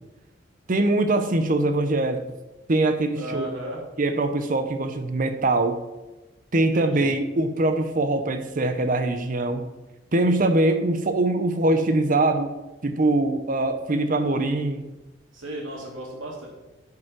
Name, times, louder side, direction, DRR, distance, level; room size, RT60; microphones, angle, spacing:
voice 1, 0.7-2.2 2.7-3.5 4.0-5.8 6.5-9.6 10.1-12.5 12.8-14.9, right 2 dB, 45° right, 9 dB, 0.7 m, -22 dB
voice 2, 3.1-3.8 6.6-7.1 15.3-16.5, right 1 dB, 85° right, -3 dB, 3.0 m, -35 dB
9.3 x 5.4 x 6.0 m, 1.1 s
head